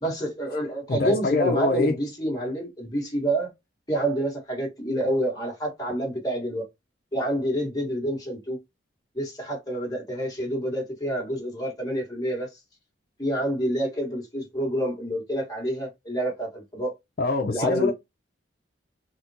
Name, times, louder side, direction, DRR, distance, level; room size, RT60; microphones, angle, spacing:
voice 1, 0.0-3.5 3.9-6.7 7.1-8.6 9.1-12.5 13.2-16.9 17.5-17.9, right 1 dB, 20° left, 1.3 m, -28 dB
voice 2, 0.9-2.0 17.2-17.9, left 3 dB, 50° left, 0.5 m, -24 dB
3.8 x 2.1 x 2.7 m
head